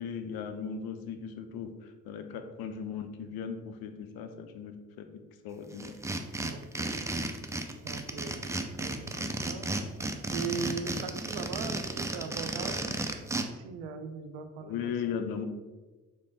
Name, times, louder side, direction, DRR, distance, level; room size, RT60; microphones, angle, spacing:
voice 1, 0.0-5.9 14.6-15.5, left 7 dB, 65° left, 7 dB, 0.6 m, -37 dB
sound 1, 5.8-13.4, right 2 dB, 10° right, 0.4 m, -33 dB
voice 2, 6.4-7.0 7.8-8.5 8.8-9.7 10.3-13.0 13.5-14.8 15.0-15.2, right 5 dB, 75° right, 7 dB, 0.6 m, -39 dB
3.3 x 3.2 x 3.9 m, 1.2 s
hypercardioid pair, 45°, 39 cm